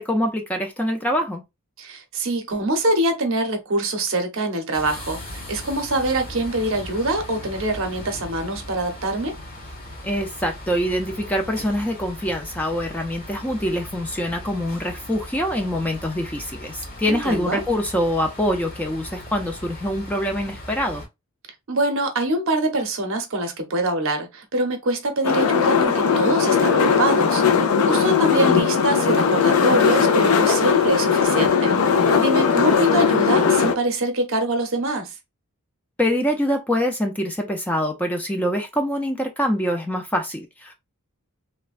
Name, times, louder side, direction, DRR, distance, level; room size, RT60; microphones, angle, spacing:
voice 1, 0.0-1.4 10.0-21.0 36.0-40.7, equal, 5° left, 0.3 m, -24 dB
voice 2, 1.8-9.4 17.1-17.6 21.7-35.1, right 1 dB, 60° right, 0.7 m, -24 dB
sound 1, 4.7-21.1, left 1 dB, 40° left, 1.2 m, -38 dB
sound 2, 25.2-33.7, left 6 dB, 75° left, 0.4 m, -18 dB
3.2 x 2.1 x 2.4 m
head